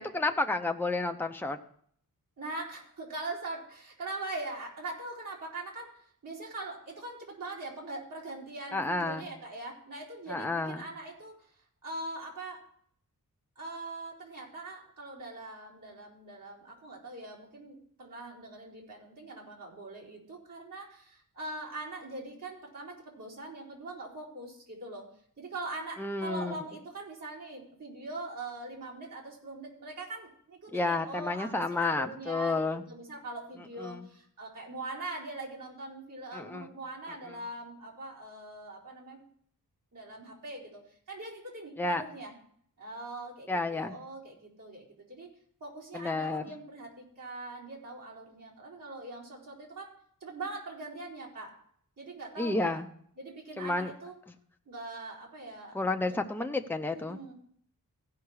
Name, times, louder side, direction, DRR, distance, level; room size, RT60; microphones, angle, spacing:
voice 1, 0.0-1.6 8.7-9.3 10.3-10.9 26.0-26.6 30.7-32.8 33.8-34.0 36.3-36.7 37.3-37.4 41.8-42.0 43.5-43.9 45.9-46.4 52.4-52.9 53.6-53.9 55.7-57.2, left 2 dB, 5° left, 5 dB, 0.7 m, -31 dB
voice 2, 2.4-11.5 11.8-12.6 13.6-25.1 25.4-39.2 39.9-40.8 41.1-42.3 42.8-49.9 50.2-51.5 52.0-52.8 53.2-54.1 54.7-55.8 56.1-56.2 56.9-57.3, right 2 dB, 60° right, -5 dB, 4.2 m, -42 dB
16.0 x 5.8 x 4.8 m, 0.62 s
wide cardioid pair, 120°, 36 cm